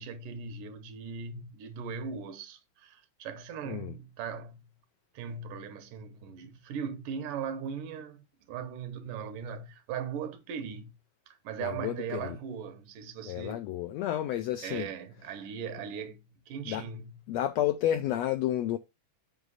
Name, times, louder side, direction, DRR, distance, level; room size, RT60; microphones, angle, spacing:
voice 1, 0.0-4.7 5.1-10.9 11.3-13.7 14.6-17.2, right 6 dB, 85° right, 2.6 m, -39 dB
voice 2, 3.6-4.0 11.6-12.4 13.3-14.9 15.2-15.4 16.7-16.8 17.3-18.8, left 12 dB, 85° left, 1.5 m, -31 dB
8.1 x 5.2 x 4.0 m
omnidirectional pair, 3.6 m